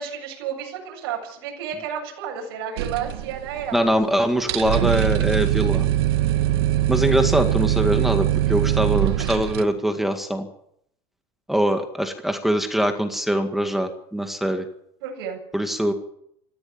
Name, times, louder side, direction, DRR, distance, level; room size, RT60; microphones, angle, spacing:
voice 1, 0.0-3.9 6.3-6.7 15.0-15.4, right 8 dB, 75° right, 0 dB, 7.6 m, -32 dB
sound 1, 2.8-4.1 4.4-9.6, right 13 dB, 90° right, 1.9 m, -22 dB
voice 2, 3.7-5.9 6.9-10.5 11.5-14.6 15.5-15.9, equal, ahead, 6 dB, 2.0 m, -23 dB
19.5 x 15.0 x 8.8 m, 0.72 s
supercardioid pair, 150°, 13 cm